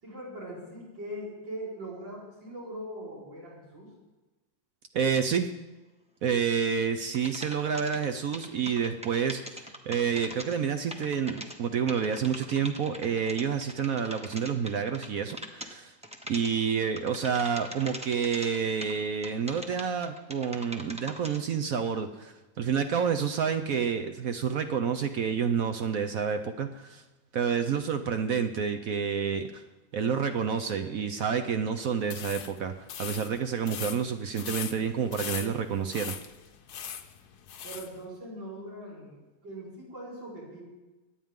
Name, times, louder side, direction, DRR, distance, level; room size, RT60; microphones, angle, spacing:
voice 1, 0.0-3.9 37.6-40.6, right 1 dB, 85° right, -7 dB, 5.5 m, -41 dB
voice 2, 4.9-5.5 6.2-15.9 16.3-27.0 27.3-29.6 29.9-32.7 33.0-36.1, right 7 dB, 60° right, 7 dB, 1.0 m, -29 dB
sound 1, 5.2-5.3 7.1-10.6 10.9-11.6 11.9-15.7 16.0-16.5 17.0-18.9 19.2-21.4, equal, 5° right, 0.6 m, -41 dB
sound 2, 32.0-37.9, left 8 dB, 65° left, 1.3 m, -40 dB
24.0 x 9.1 x 3.7 m, 1.1 s
omnidirectional pair, 2.0 m